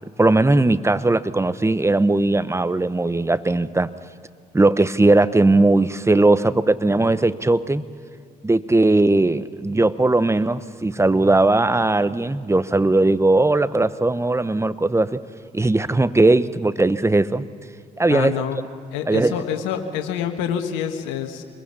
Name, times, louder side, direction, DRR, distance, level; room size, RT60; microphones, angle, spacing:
voice 1, 0.2-3.9 4.5-7.9 8.4-15.2 15.5-17.4 18.0-18.3 19.1-19.4, right 2 dB, 15° right, 15 dB, 1.0 m, -18 dB
voice 2, 18.1-18.6 18.9-21.4, left 9 dB, 80° left, 6 dB, 1.4 m, -27 dB
26.0 x 22.0 x 5.6 m, 2.2 s
hypercardioid pair, 50°, 20 cm